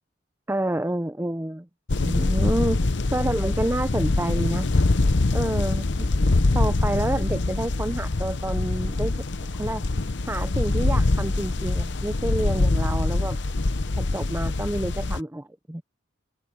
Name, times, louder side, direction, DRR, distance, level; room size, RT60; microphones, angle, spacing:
voice 1, 0.5-2.8 3.1-4.7 5.3-9.2 9.5-9.8 10.3-13.4 14.0-15.8, right 1 dB, 10° right, 0.6 m, -29 dB
sound 1, 1.9-15.2, left 2 dB, 60° left, 0.9 m, -24 dB
head